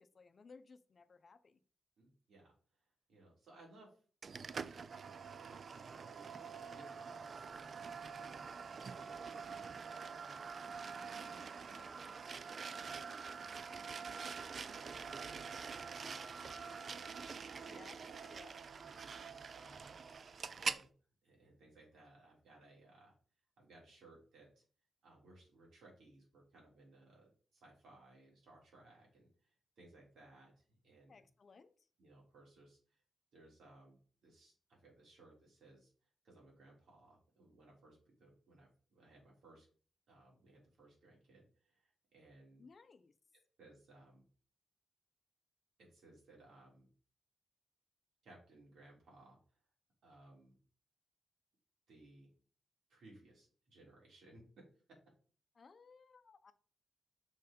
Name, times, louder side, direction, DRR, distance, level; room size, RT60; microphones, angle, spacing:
voice 1, 0.0-1.6 11.8-12.2 17.6-18.6 31.1-31.9 42.6-43.1 55.5-56.5, left 4 dB, 45° left, 11 dB, 0.6 m, -60 dB
voice 2, 2.0-2.5 3.1-4.0 4.5-5.8 6.7-9.2 10.0-11.9 12.4-17.3 18.8-20.1 20.6-20.9 21.2-23.1 23.6-24.6 25.0-31.1 32.0-33.0 33.3-35.9 36.2-39.7 40.1-42.6 43.6-44.2 45.8-46.9 48.2-49.4 50.0-50.6 51.9-52.3 52.9-54.4, right 2 dB, 90° right, -2 dB, 3.7 m, -63 dB
sound 1, 4.2-20.9, right 5 dB, 50° right, 0.4 m, -45 dB
6.1 x 4.6 x 5.2 m, 0.42 s
wide cardioid pair, 135°, 0 cm